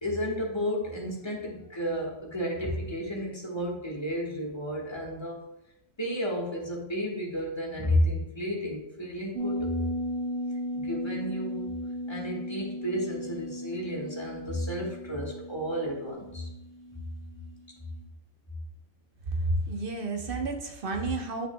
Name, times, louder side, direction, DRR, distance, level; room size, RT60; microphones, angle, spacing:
voice 1, 0.0-5.4 6.0-9.9 10.7-11.7 12.1-16.5, equal, 20° left, -2 dB, 1.3 m, -32 dB
sound 1, 9.3-17.6 18.0-18.1, equal, 60° right, 2.7 m, -36 dB
voice 2, 19.3-21.5, right 2 dB, 45° right, 4 dB, 0.9 m, -30 dB
9.0 x 5.9 x 2.2 m, 0.87 s
omnidirectional pair, 1.5 m